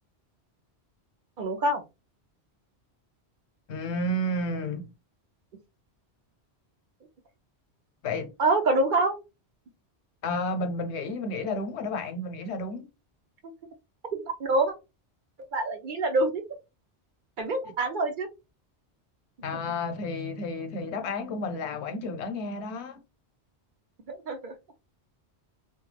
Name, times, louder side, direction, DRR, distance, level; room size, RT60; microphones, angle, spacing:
voice 1, 1.4-1.8 8.4-9.2 14.2-14.7 15.5-16.4 17.4-18.3 24.1-24.5, right 2 dB, 60° right, 0.6 m, -26 dB
voice 2, 3.7-4.9 8.0-8.3 10.2-12.9 19.4-23.0, left 1 dB, 90° left, 0.9 m, -31 dB
2.2 x 2.2 x 3.2 m
omnidirectional pair, 1.1 m